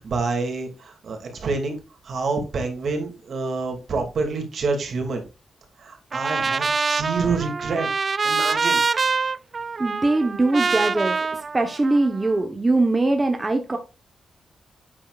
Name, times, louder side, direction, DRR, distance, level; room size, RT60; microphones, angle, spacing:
voice 1, 0.0-5.2 5.8-7.9 8.2-8.8, right 4 dB, 65° right, 3 dB, 2.6 m, -27 dB
Trumpet, 6.1-12.3, right 4 dB, 40° right, 0.3 m, -25 dB
voice 2, 9.8-13.8, right 2 dB, 20° right, 4 dB, 1.2 m, -22 dB
8.6 x 7.5 x 2.5 m, 0.30 s
cardioid pair, 110°, 0 cm